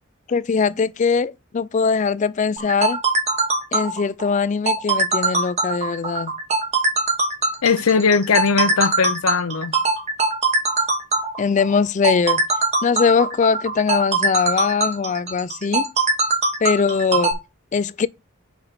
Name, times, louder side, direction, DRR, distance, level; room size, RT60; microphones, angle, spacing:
voice 1, 0.3-3.0 3.7-6.3 11.4-12.4 12.8-15.9 16.6-17.4 17.7-18.1, left 5 dB, 35° left, 0.3 m, -21 dB
sound 1, 2.6-17.3, right 3 dB, 30° right, 1.0 m, -21 dB
voice 2, 7.6-9.8, left 5 dB, 90° left, 0.7 m, -19 dB
5.9 x 5.2 x 4.0 m
head